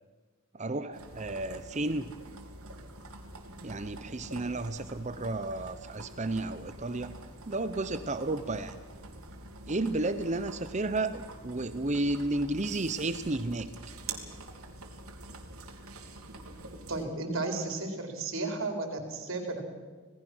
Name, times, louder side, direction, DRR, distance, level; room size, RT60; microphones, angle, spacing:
voice 1, 0.5-2.1 3.6-7.2 7.5-8.8 9.7-13.7, right 2 dB, 35° right, 11 dB, 0.7 m, -32 dB
sound 1, 0.9-17.0, right 2 dB, 80° right, 2.8 m, -46 dB
voice 2, 16.9-19.6, right 2 dB, 60° right, 3 dB, 4.2 m, -33 dB
27.0 x 18.5 x 6.2 m, 1.4 s
head